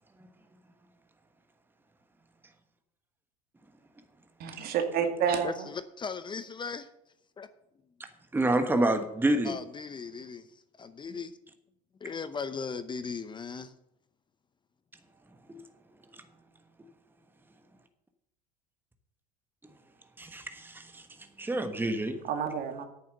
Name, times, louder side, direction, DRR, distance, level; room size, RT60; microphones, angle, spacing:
voice 1, 4.4-5.6 22.2-22.9, right 7 dB, 55° right, 2.1 m, -29 dB
voice 2, 5.4-6.9 7.4-7.5 9.4-10.5 10.8-11.3 12.0-13.7, left 5 dB, 25° left, 0.7 m, -38 dB
voice 3, 8.3-9.6 20.2-21.0 21.4-22.2, right 1 dB, 10° right, 1.3 m, -27 dB
8.9 x 7.0 x 7.8 m
hypercardioid pair, 90°, 19 cm